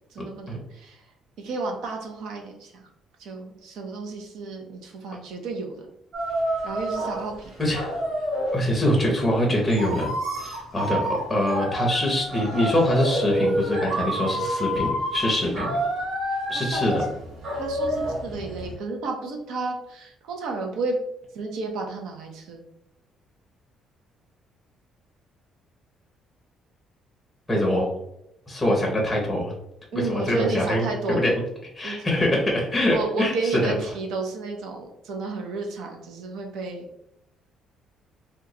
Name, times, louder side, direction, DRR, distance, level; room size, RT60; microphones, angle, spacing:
voice 1, 0.1-1.0 1.4-2.8 3.2-5.9 6.6-7.5 16.5-17.1 17.6-21.0 21.3-22.6 29.9-31.3 31.8-32.1 32.5-32.6 32.9-36.8, right 3 dB, 75° right, 2 dB, 0.7 m, -32 dB
sound 1, 6.1-8.6 9.3-18.7, equal, 50° right, 1.4 m, -28 dB
voice 2, 7.6-7.9 8.5-10.1 10.4-15.8 16.5-17.0 27.5-27.9 28.5-29.5 29.9-31.4 31.7-33.7, left 1 dB, 5° left, -1 dB, 0.6 m, -24 dB
2.9 x 2.3 x 3.7 m, 0.78 s
cardioid pair, 165°, 0 cm